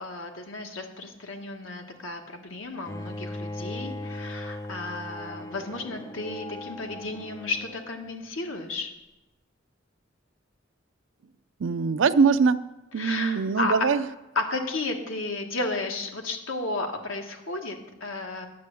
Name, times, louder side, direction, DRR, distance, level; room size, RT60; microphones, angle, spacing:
voice 1, 0.0-8.9 13.0-13.7 14.3-18.5, left 3 dB, 90° left, 4 dB, 1.5 m, -33 dB
Bowed string instrument, 2.8-7.9, left 1 dB, 15° left, 0.6 m, -38 dB
voice 2, 11.6-12.6 12.9-14.0, right 5 dB, 70° right, 13 dB, 0.5 m, -22 dB
9.5 x 7.6 x 6.9 m, 1.0 s
head